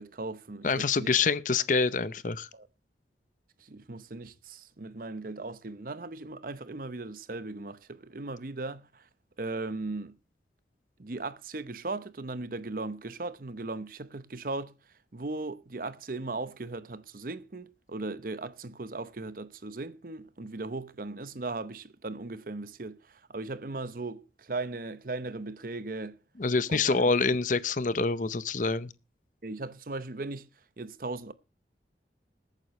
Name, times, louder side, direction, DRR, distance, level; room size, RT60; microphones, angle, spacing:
voice 1, 0.0-1.2 2.5-2.7 3.6-9.1 9.4-10.2 11.0-14.7 15.1-26.2 26.7-27.0 29.4-30.5 30.8-31.3, right 3 dB, 50° right, 0.8 m, -38 dB
voice 2, 0.6-2.5 26.4-28.9, left 4 dB, 45° left, 0.7 m, -26 dB
21.0 x 9.2 x 3.1 m
head